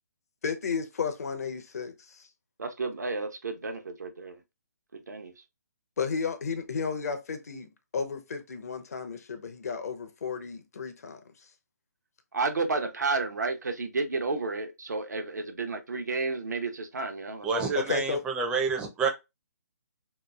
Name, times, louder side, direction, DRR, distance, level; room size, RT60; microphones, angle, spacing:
voice 1, 0.4-2.2 6.0-11.2 17.7-18.2, left 5 dB, 65° left, 0.7 m, -33 dB
voice 2, 2.6-4.4 4.9-5.3 12.3-17.9, right 3 dB, 80° right, 0.7 m, -32 dB
voice 3, 17.4-19.1, right 5 dB, 10° right, 0.4 m, -28 dB
3.0 x 2.3 x 2.3 m
figure-of-eight pair, 145°, 9 cm